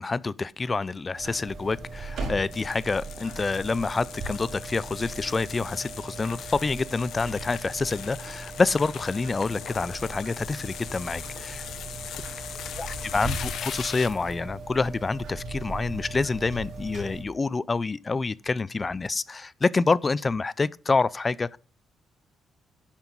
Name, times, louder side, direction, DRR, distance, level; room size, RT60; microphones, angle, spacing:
voice 1, 0.0-11.7 12.8-21.6, left 4 dB, 30° left, 0.4 m, -27 dB
sound 1, 1.1-17.2, right 3 dB, 70° right, 5.4 m, -39 dB
sound 2, 2.5-14.4, left 9 dB, 70° left, 0.9 m, -40 dB
10.5 x 5.8 x 5.4 m
cardioid pair, 90°, 0 cm